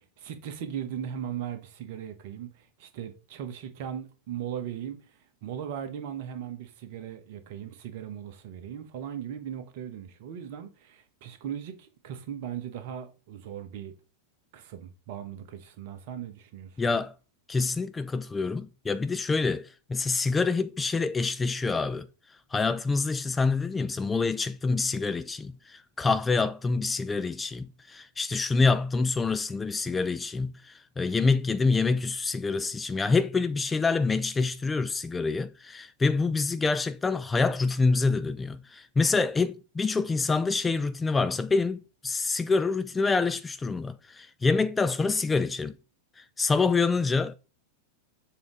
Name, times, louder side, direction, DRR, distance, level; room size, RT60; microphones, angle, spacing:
voice 1, 0.2-5.0 5.4-13.9 14.5-16.7, right 9 dB, 50° right, 1.2 m, -38 dB
voice 2, 16.8-17.1 17.5-22.1 22.5-45.7 46.2-47.3, left 4 dB, 15° left, 0.4 m, -26 dB
7.1 x 3.9 x 4.6 m
figure-of-eight pair, 90°, 0 cm